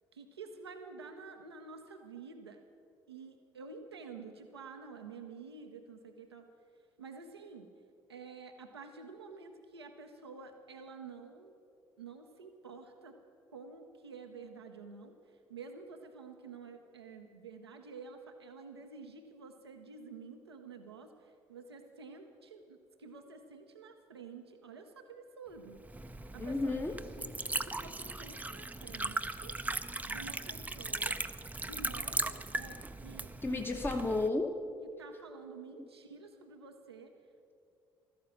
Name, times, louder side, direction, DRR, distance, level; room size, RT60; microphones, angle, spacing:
voice 1, 0.1-2.6 3.1-6.5 7.0-7.7 8.1-11.5 12.0-13.2 13.5-15.2 15.5-25.8 26.1-29.5 30.1-31.2 31.6-34.0 34.8-37.1, right 4 dB, 85° right, 4 dB, 0.8 m, -50 dB
Liquid, 25.7-34.3, right 2 dB, 10° right, 0.6 m, -38 dB
voice 2, 26.4-27.0 33.4-34.6 35.8-35.9, left 2 dB, 15° left, 4 dB, 1.0 m, -32 dB
15.5 x 13.5 x 6.0 m, 2.5 s
figure-of-eight pair, 50°, 13 cm